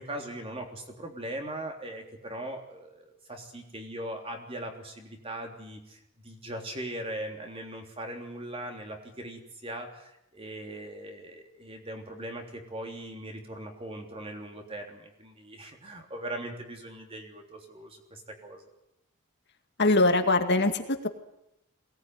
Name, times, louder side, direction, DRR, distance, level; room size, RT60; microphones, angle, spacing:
voice 1, 0.0-18.6, right 1 dB, 25° right, 3 dB, 3.4 m, -40 dB
voice 2, 19.8-21.1, left 2 dB, 50° left, 6 dB, 2.2 m, -23 dB
22.5 x 18.5 x 9.6 m, 0.84 s
head